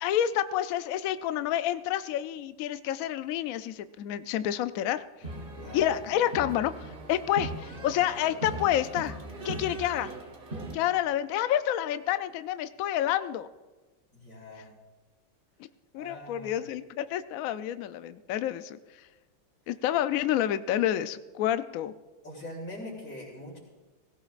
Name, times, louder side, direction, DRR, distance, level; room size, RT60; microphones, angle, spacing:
voice 1, 0.0-5.0 5.7-9.2 9.4-10.1 10.7-13.5 15.9-18.8 19.7-21.9, left 11 dB, 90° left, 12 dB, 0.7 m, -29 dB
sound 1, 5.2-10.8, right 2 dB, 35° right, 1.1 m, -39 dB
voice 2, 5.6-5.9 14.1-14.7 15.9-16.6 22.2-23.6, left 1 dB, 50° left, -8 dB, 3.5 m, -42 dB
17.5 x 16.5 x 2.5 m, 1.2 s
omnidirectional pair, 2.1 m